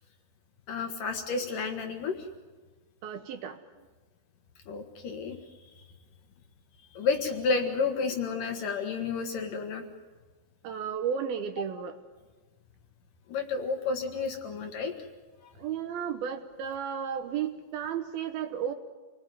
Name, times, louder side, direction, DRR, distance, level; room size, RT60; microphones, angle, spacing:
voice 1, 0.7-2.3 4.7-5.4 6.9-9.8 13.3-14.9, left 4 dB, 60° left, 4 dB, 2.7 m, -31 dB
voice 2, 3.0-3.6 10.6-12.0 15.6-18.7, right 8 dB, 70° right, 7 dB, 2.6 m, -33 dB
28.0 x 20.5 x 9.5 m, 1.3 s
omnidirectional pair, 5.1 m